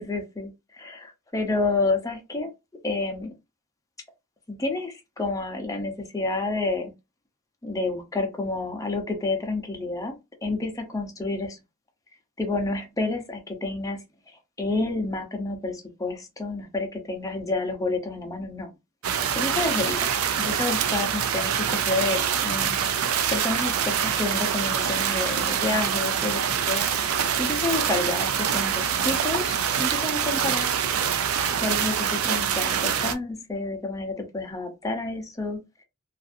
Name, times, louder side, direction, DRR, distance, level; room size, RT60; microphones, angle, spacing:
voice 1, 0.0-2.5 2.8-3.3 4.5-6.9 7.6-11.6 12.4-14.0 14.6-18.7 19.3-20.1 20.4-26.9 27.4-30.7 31.6-35.6, left 2 dB, 15° left, 0.7 m, -29 dB
sound 1, 19.0-33.1, right 8 dB, 75° right, 0.4 m, -25 dB
2.6 x 2.5 x 2.5 m
head